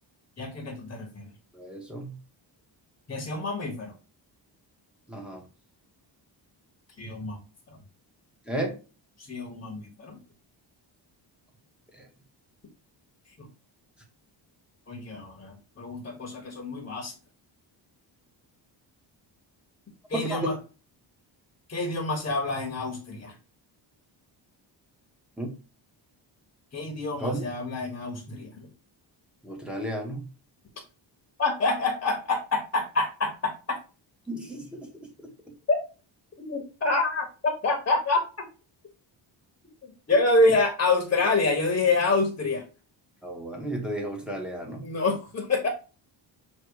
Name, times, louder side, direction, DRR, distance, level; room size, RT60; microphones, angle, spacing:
voice 1, 0.4-1.2 3.1-3.9 7.0-7.4 9.2-10.2 13.4-13.5 14.9-17.1 20.1-20.5 21.7-23.3 26.7-28.7 31.4-33.5 35.7-35.8 36.4-37.2 37.6-38.2 40.1-42.6 44.8-45.7, left 3 dB, 25° left, 3 dB, 1.2 m, -27 dB
voice 2, 1.5-2.2 5.1-5.4 8.5-8.7 11.9-12.1 20.1-20.5 25.4-25.5 27.2-27.5 29.4-30.3 34.3-35.5 43.2-44.8, right 1 dB, ahead, 2 dB, 1.3 m, -33 dB
6.4 x 3.1 x 4.7 m, 0.33 s
wide cardioid pair, 175°, 45 cm